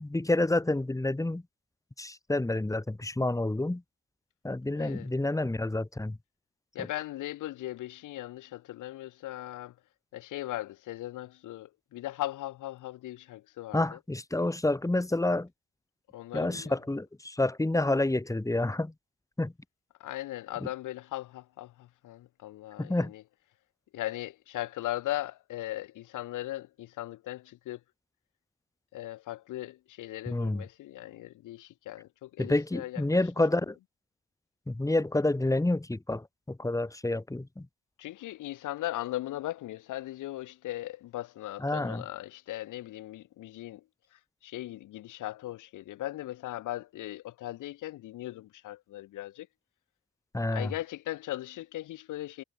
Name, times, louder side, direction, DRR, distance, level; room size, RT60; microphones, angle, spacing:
voice 1, 0.0-1.4 2.0-3.8 4.4-6.2 13.7-15.5 16.3-18.9 19.4-19.5 22.8-23.1 30.3-30.6 32.4-33.8 34.7-37.7 41.6-42.0 50.3-50.7, left 2 dB, 10° left, 3.5 m, -28 dB
voice 2, 4.7-5.1 6.7-9.7 10.1-14.0 16.1-16.8 20.0-23.2 23.9-27.8 28.9-33.2 38.0-43.8 44.1-49.5 50.5-52.4, left 15 dB, 85° left, 4.5 m, -38 dB
cardioid pair, 90°, 30 cm